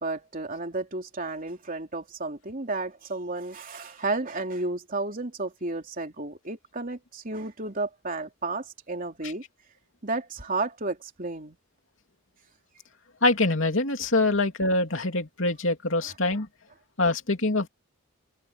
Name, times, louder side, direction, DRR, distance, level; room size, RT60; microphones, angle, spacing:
voice 1, 0.0-9.4 10.0-11.6, right 3 dB, 40° right, 3.4 m, -32 dB
voice 2, 13.2-16.5 17.0-17.7, left 2 dB, 60° left, 3.1 m, -24 dB
head